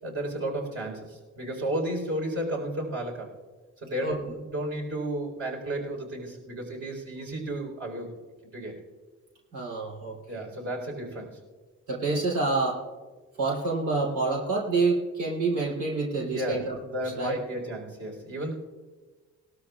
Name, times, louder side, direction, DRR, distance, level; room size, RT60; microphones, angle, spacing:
voice 1, 0.0-3.3 3.8-8.1 8.5-8.8 10.3-11.4 16.1-18.5, right 1 dB, 50° right, 1 dB, 4.1 m, -33 dB
voice 2, 9.5-10.4 11.9-12.8 13.4-16.8 17.0-17.3, right 3 dB, 80° right, -5 dB, 3.2 m, -27 dB
20.0 x 13.0 x 2.4 m, 1.4 s
cardioid pair, 90°, 30 cm